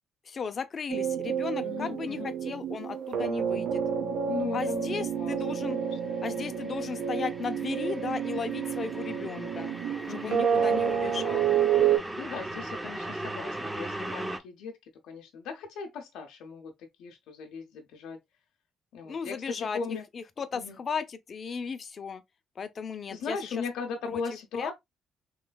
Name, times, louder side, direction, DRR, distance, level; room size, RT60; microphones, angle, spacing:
voice 1, 0.2-3.8 4.5-5.8 6.2-9.7 10.2-11.6 19.0-19.8 20.1-22.2 22.6-23.4 24.0-24.2 24.6-24.7, left 6 dB, 45° left, 0.5 m, -35 dB
sound 1, 0.9-12.0, right 8 dB, 80° right, 0.7 m, -29 dB
voice 2, 1.6-2.3 4.3-6.5 10.1-10.8 12.2-14.8 15.0-18.2 18.9-20.0 20.5-20.8 23.1-24.7, left 5 dB, 85° left, 0.6 m, -38 dB
sound 2, 5.2-14.4, right 1 dB, 10° right, 0.6 m, -39 dB
3.2 x 3.1 x 2.2 m
cardioid pair, 90°, 0 cm